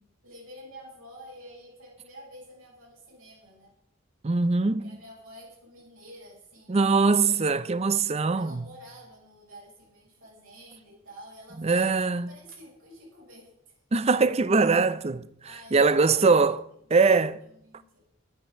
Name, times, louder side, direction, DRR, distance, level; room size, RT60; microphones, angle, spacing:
voice 1, 0.2-3.7 4.8-6.8 8.3-11.9 12.3-13.7 15.4-16.4 17.4-18.0, equal, 90° right, 6.7 m, -48 dB
voice 2, 4.2-4.9 6.7-8.7 11.6-12.3 13.9-15.3 15.7-16.6 16.9-17.4, right 4 dB, 30° right, 0.5 m, -22 dB
10.5 x 10.5 x 6.7 m
head